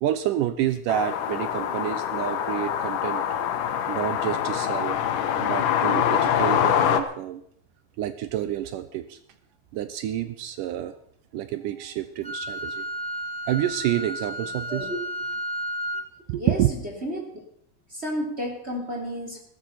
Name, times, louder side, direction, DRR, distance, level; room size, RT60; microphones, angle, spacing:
voice 1, 0.0-3.2 3.9-5.0 5.4-7.4 8.0-9.2 9.7-10.9 11.3-12.8 13.5-14.9 16.3-16.7, right 12 dB, 75° right, 11 dB, 2.2 m, -28 dB
sound 1, 0.9-7.0, left 9 dB, 70° left, 2.6 m, -25 dB
Wind instrument woodwind instrument, 12.2-16.1, equal, 5° left, 0.8 m, -32 dB
voice 2, 17.9-19.4, equal, 20° right, 0 dB, 3.2 m, -31 dB
16.0 x 14.0 x 5.8 m, 0.66 s
omnidirectional pair, 4.0 m